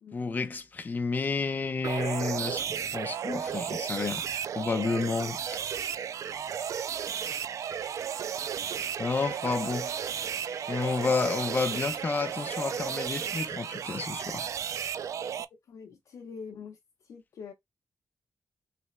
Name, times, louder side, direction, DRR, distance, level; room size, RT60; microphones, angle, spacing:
voice 1, 0.1-4.2 4.5-5.4 9.0-9.9 10.7-14.5, left 4 dB, 30° left, 0.6 m, -30 dB
sound 1, 1.8-15.4, right 8 dB, 65° right, 0.3 m, -34 dB
voice 2, 15.7-16.8 17.0-17.5, left 5 dB, 70° left, 0.6 m, -44 dB
3.3 x 3.2 x 3.0 m
wide cardioid pair, 160°, 6 cm